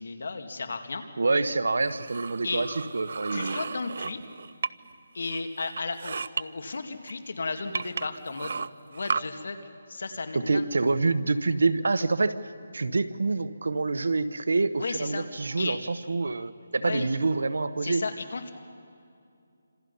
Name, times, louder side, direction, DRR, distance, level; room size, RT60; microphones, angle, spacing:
voice 1, 0.0-1.0 2.4-2.7 3.3-4.2 5.1-8.5 8.9-9.6 9.9-10.6 14.8-15.3 15.6-15.8 16.8-17.1 17.8-18.5, left 3 dB, 65° left, 6 dB, 2.3 m, -34 dB
voice 2, 1.2-2.7 2.9-3.6 10.3-18.0, right 3 dB, 80° right, 11 dB, 1.2 m, -26 dB
sound 1, 1.8-4.9 5.2-6.4 7.1-7.2 7.7-9.2, right 5 dB, 55° right, 0.5 m, -34 dB
27.5 x 26.5 x 5.6 m, 2.5 s
hypercardioid pair, 170°, 0 cm